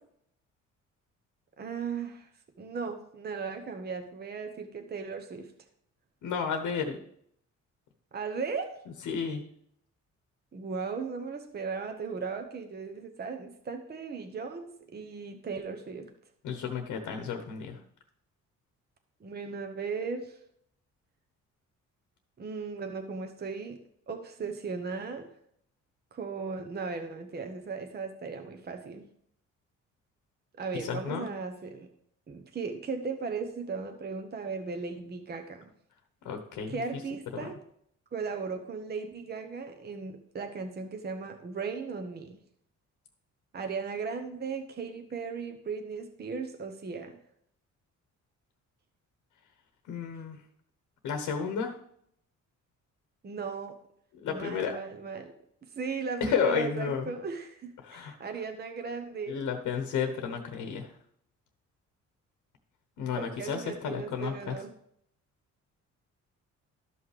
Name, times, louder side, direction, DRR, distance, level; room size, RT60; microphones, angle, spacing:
voice 1, 1.6-2.3 2.6-5.5 8.1-8.7 10.5-16.1 19.2-20.4 22.4-23.8 24.1-25.3 26.1-29.1 30.6-31.9 32.3-35.7 36.7-37.5 38.1-42.4 43.5-47.2 53.2-53.8 54.3-55.3 55.7-59.4 63.2-64.7, right 5 dB, 35° right, 6 dB, 0.9 m, -37 dB
voice 2, 6.2-7.0 9.0-9.4 16.4-17.8 30.8-31.3 36.2-37.0 37.3-37.5 49.9-50.4 51.0-51.8 54.2-54.8 56.2-57.1 57.8-58.2 59.3-60.9 63.0-64.6, left 6 dB, 80° left, 5 dB, 1.1 m, -32 dB
12.5 x 5.5 x 3.3 m, 0.69 s
cardioid pair, 90°, 30 cm